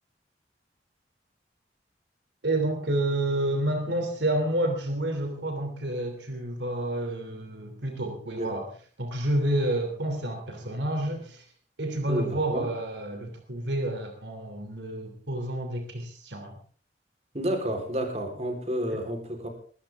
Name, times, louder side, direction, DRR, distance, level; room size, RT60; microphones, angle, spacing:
voice 1, 2.4-8.7 9.0-11.4 11.8-16.5, right 1 dB, 90° right, 5 dB, 3.0 m, -29 dB
voice 2, 12.1-12.7 17.3-19.5, equal, 40° right, 4 dB, 4.1 m, -30 dB
21.5 x 14.5 x 3.6 m, 0.43 s
head